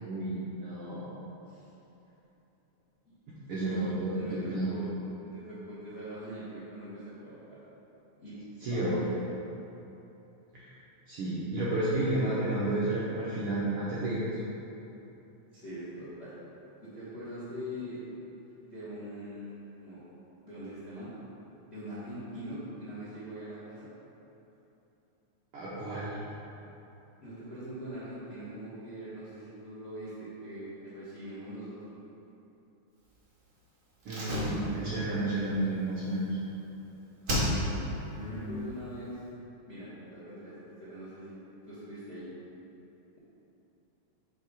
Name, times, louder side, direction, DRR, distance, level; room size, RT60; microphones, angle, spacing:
voice 1, 0.0-1.1 3.5-4.7 8.6-9.1 10.5-10.7 11.1-14.4 25.5-26.2 34.0-36.3 38.0-38.5, right 1 dB, 70° right, -9 dB, 1.3 m, -31 dB
voice 2, 3.7-4.9 5.3-7.6 8.2-8.3 8.7-9.2 12.2-12.3 15.5-16.3 16.8-18.0 18.6-19.5 19.8-20.0 20.4-21.1 21.7-23.9 27.2-32.0 38.1-39.2 39.6-40.5 40.8-41.3 41.7-42.2, equal, 50° left, -11 dB, 0.7 m, -42 dB
Slam, 34.0-36.8 37.2-38.0 38.3-38.4, equal, 55° right, 0.9 m, -33 dB
7.4 x 2.9 x 4.8 m, 3.0 s
omnidirectional pair, 3.4 m